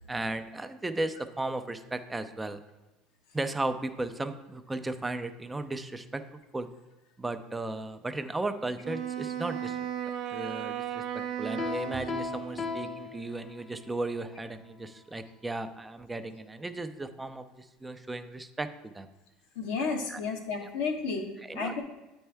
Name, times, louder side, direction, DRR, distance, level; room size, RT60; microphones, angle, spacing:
voice 1, 0.1-2.6 3.3-6.7 7.2-9.8 10.3-11.0 11.4-19.1 20.1-20.2 21.5-21.8, right 2 dB, 15° right, 9 dB, 0.5 m, -35 dB
Wind instrument woodwind instrument, 8.8-13.0, right 10 dB, 60° right, 0.5 m, -35 dB
Piano, 11.6-13.9, left 5 dB, 40° left, 0.7 m, -37 dB
voice 2, 19.5-21.8, left 4 dB, 80° left, 2 dB, 1.3 m, -32 dB
8.6 x 4.4 x 3.5 m, 1.1 s
supercardioid pair, 100°, 0 cm